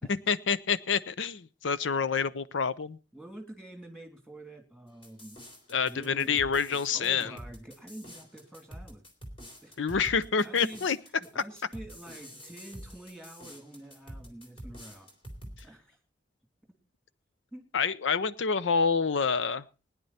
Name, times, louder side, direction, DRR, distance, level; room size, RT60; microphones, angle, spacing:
voice 1, 0.1-3.0 5.7-7.4 9.8-11.0 11.4-11.5 17.7-19.6, left 5 dB, 90° left, 16 dB, 0.6 m, -27 dB
voice 2, 3.1-5.4 5.8-9.0 9.6-9.8 10.4-10.9 11.2-15.1 15.6-16.0 17.5-17.7, right 1 dB, 5° left, 3 dB, 3.0 m, -47 dB
sound 1, 5.0-15.6, equal, 30° left, 3.5 m, -47 dB
20.0 x 10.5 x 4.2 m, 0.34 s
head